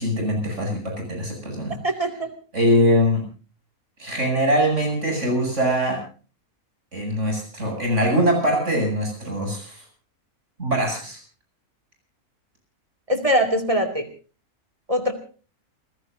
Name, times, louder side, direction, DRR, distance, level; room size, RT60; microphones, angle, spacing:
voice 1, 0.0-1.8 2.5-3.2 4.0-6.0 6.9-9.8 10.6-11.2, equal, 55° right, 2 dB, 8.5 m, -22 dB
voice 2, 1.8-2.3 13.1-14.1 14.9-15.1, equal, 25° right, 7 dB, 2.7 m, -22 dB
29.0 x 16.5 x 2.7 m, 0.37 s
omnidirectional pair, 1.5 m